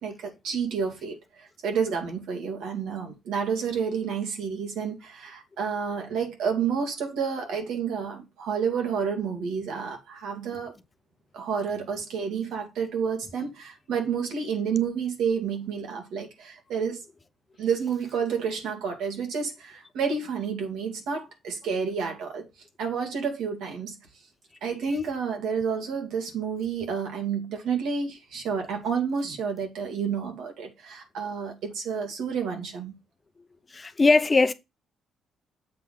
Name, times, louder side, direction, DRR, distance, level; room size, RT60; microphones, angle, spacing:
voice 1, 0.0-10.7 11.3-17.0 17.6-22.5 22.8-23.9 24.6-33.0, right 6 dB, 85° right, 2.2 m, -30 dB
voice 2, 33.7-34.5, left 3 dB, 30° left, 0.7 m, -20 dB
7.6 x 3.5 x 5.8 m
cardioid pair, 90°, 0 cm